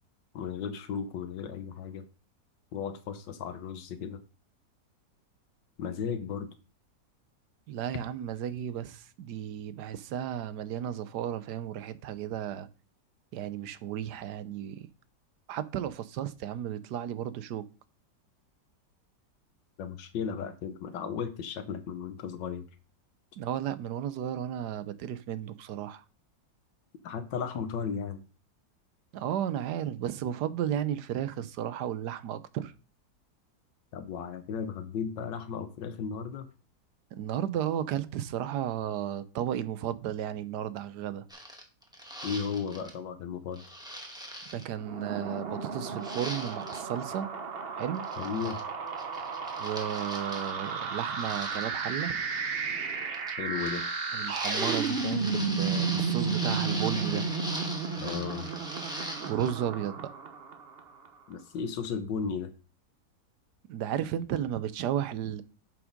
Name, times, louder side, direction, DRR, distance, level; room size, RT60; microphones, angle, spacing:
voice 1, 0.3-2.0 2.7-4.2 5.8-6.5 19.8-22.7 27.0-28.2 33.9-36.5 42.2-43.6 48.2-48.6 53.4-53.8 58.0-58.5 61.3-62.5, left 6 dB, 80° left, 1.6 m, -35 dB
voice 2, 7.7-12.7 13.3-14.9 15.5-17.7 23.4-26.0 29.1-32.7 37.1-41.3 44.5-47.3 47.8-48.0 49.6-52.2 54.1-57.3 59.2-60.1 63.7-65.4, right 10 dB, 70° right, 1.2 m, -34 dB
sound 1, 41.3-42.9 43.5-44.6 46.0-46.8 48.0-48.6 48.9-50.7 51.1-51.6 53.1-53.8 54.2-59.5, equal, ahead, 1.4 m, -39 dB
sound 2, 44.7-61.1, right 5 dB, 45° right, 0.9 m, -33 dB
7.3 x 6.0 x 5.2 m
omnidirectional pair, 1.9 m